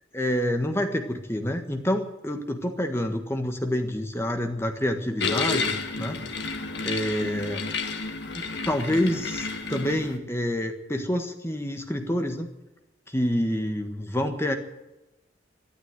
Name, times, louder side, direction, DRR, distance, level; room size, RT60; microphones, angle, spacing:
voice 1, 0.1-5.7 6.0-6.2 6.8-7.6 8.3-12.5 13.1-14.5, equal, 10° left, 5 dB, 1.5 m, -27 dB
sound 1, 5.2-10.2, left 4 dB, 60° left, 1.6 m, -31 dB
13.0 x 12.0 x 9.4 m, 0.98 s
head